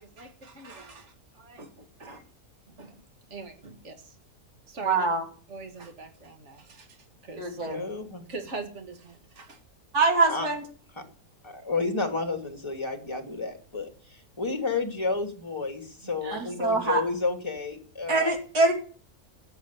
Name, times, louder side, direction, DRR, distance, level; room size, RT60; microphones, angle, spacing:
voice 1, 0.0-2.3 2.7-3.0 3.3-4.2 4.7-5.1 5.5-7.6 8.3-9.6 16.0-16.5, right 3 dB, 50° right, 6 dB, 2.4 m, -43 dB
voice 2, 4.8-5.2 7.4-7.8 9.9-10.6 16.3-17.0 18.1-18.7, right 3 dB, 85° right, 2 dB, 3.3 m, -24 dB
voice 3, 7.6-8.2 10.3-10.5 11.0-11.1 11.4-18.3, left 3 dB, 20° left, 6 dB, 2.7 m, -31 dB
15.5 x 7.9 x 8.5 m, 0.43 s
omnidirectional pair, 1.6 m